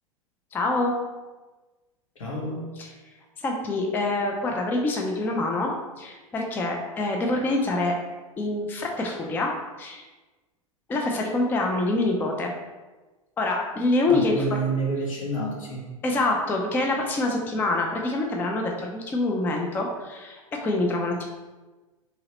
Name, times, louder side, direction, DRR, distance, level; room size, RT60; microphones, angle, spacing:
voice 1, 0.5-0.9 3.4-5.7 6.0-7.9 8.4-9.5 9.8-10.1 10.9-12.5 13.4-14.6 16.0-21.2, left 2 dB, 10° left, 1 dB, 0.3 m, -25 dB
voice 2, 2.1-2.8 14.1-15.9, right 2 dB, 70° left, -2 dB, 0.9 m, -29 dB
2.9 x 2.8 x 2.9 m, 1.2 s
figure-of-eight pair, 85°, 18 cm